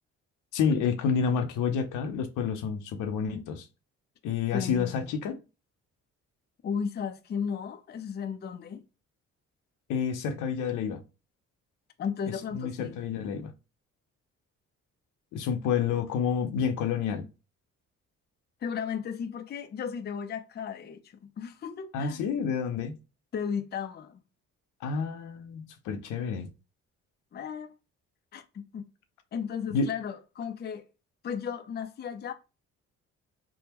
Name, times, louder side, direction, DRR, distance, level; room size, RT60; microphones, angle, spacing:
voice 1, 0.5-3.7 4.2-5.4 9.9-11.0 12.3-13.5 15.3-17.3 21.9-23.0 24.8-26.5 29.7-29.9, left 6 dB, 85° left, 0.6 m, -29 dB
voice 2, 4.5-5.1 6.6-8.8 12.0-13.0 18.6-22.2 23.3-24.2 27.3-27.7 28.3-28.8 29.3-30.9 31.2-32.3, left 7 dB, 35° left, 0.4 m, -35 dB
3.5 x 2.1 x 2.9 m
cardioid pair, 90°, 30 cm